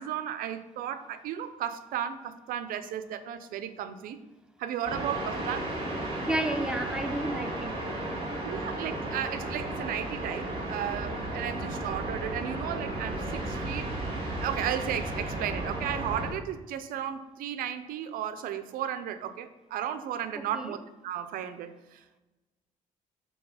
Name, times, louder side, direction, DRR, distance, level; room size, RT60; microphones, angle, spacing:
voice 1, 0.0-4.2 4.6-5.7 8.4-20.8 21.0-22.2, right 10 dB, 85° right, 11 dB, 0.5 m, -34 dB
sound 1, 4.8-16.3, right 1 dB, 40° right, 2.1 m, -34 dB
voice 2, 6.3-7.7 20.3-20.8, right 1 dB, 5° right, 6 dB, 0.5 m, -31 dB
4.6 x 4.1 x 5.5 m, 1.1 s
cardioid pair, 125°, 14 cm